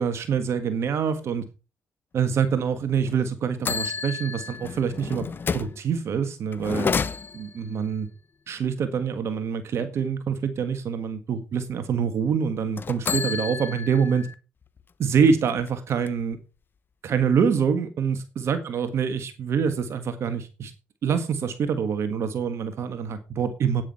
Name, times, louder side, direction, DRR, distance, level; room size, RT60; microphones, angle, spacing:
voice 1, 0.0-1.4 2.1-5.3 5.5-7.0 7.3-8.1 8.5-14.3 15.0-16.4 17.0-20.7 21.0-23.8, right 6 dB, 60° right, 1.6 m, -25 dB
sound 1, 3.0-3.2 3.6-5.8 6.5-7.6 12.7-14.3 14.8-14.9 15.3-16.3, left 5 dB, 40° left, 1.0 m, -30 dB
9.8 x 9.5 x 4.2 m
supercardioid pair, 70°, 5 cm